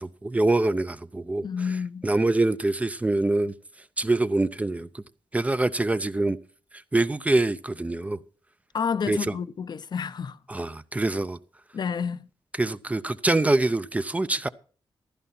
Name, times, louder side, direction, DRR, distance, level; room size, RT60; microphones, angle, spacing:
voice 1, 0.0-1.5 2.0-3.5 4.0-4.9 5.3-6.4 6.9-8.2 9.1-9.2 10.5-11.4 12.6-14.5, right 2 dB, 15° right, 0.5 m, -24 dB
voice 2, 1.4-2.1 8.7-10.4 11.7-12.3, left 6 dB, 50° left, 0.6 m, -29 dB
15.0 x 12.5 x 4.3 m
wide cardioid pair, 145°, 9 cm